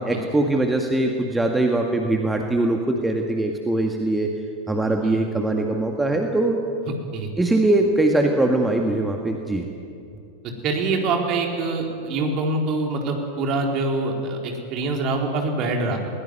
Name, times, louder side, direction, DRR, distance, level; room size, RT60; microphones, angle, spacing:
voice 1, 0.0-4.3 4.7-6.6 7.4-9.6, right 2 dB, 5° right, 2 dB, 1.8 m, -21 dB
voice 2, 6.9-7.3 10.6-16.0, right 3 dB, 35° right, 2 dB, 4.2 m, -25 dB
21.0 x 20.0 x 9.6 m, 2.5 s
figure-of-eight pair, 90°, 0 cm